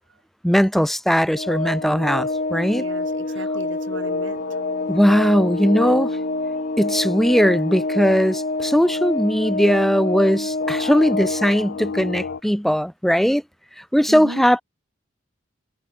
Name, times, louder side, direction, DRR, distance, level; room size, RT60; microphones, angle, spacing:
voice 1, 0.4-2.8 4.9-6.1 6.8-13.4 13.8-14.6, equal, ahead, 0.6 m, -19 dB
Organ, 1.3-12.0, left 2 dB, 45° left, 1.4 m, -27 dB
sound 1, 1.6-12.4, left 4 dB, 65° left, 0.6 m, -34 dB
voice 2, 2.7-4.6 14.1-14.4, right 1 dB, 85° right, 5.5 m, -36 dB
head